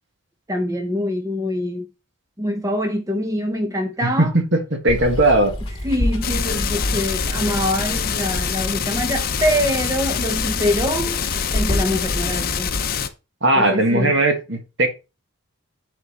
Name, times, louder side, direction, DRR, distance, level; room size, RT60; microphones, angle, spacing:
voice 1, 0.5-1.9 2.4-4.3 5.8-11.2 11.5-12.7 13.5-14.1, left 1 dB, 15° right, 0.7 m, -24 dB
voice 2, 4.0-5.6 13.4-14.9, right 2 dB, 55° right, 1.6 m, -18 dB
Water, 4.9-12.9, left 1 dB, 25° left, 2.6 m, -28 dB
sound 1, 6.2-13.1, left 7 dB, 45° left, 0.7 m, -25 dB
10.0 x 4.4 x 4.1 m
head